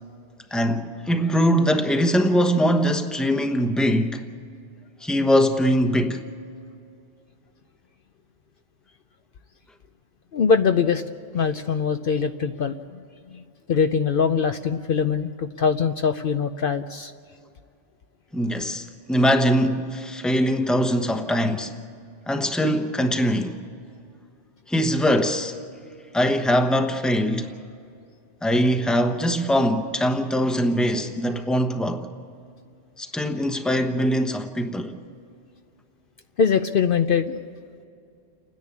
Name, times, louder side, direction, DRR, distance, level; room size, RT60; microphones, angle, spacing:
voice 1, 0.5-4.2 5.0-6.2 18.3-21.7 22.3-23.6 24.7-25.6 26.1-27.5 28.4-32.1 33.0-34.9, equal, ahead, 0.9 m, -22 dB
voice 2, 10.3-11.0 11.3-13.0 13.3-13.4 13.7-17.1 36.4-37.4, left 6 dB, 60° left, 0.8 m, -22 dB
30.0 x 10.5 x 8.5 m
omnidirectional pair, 1.1 m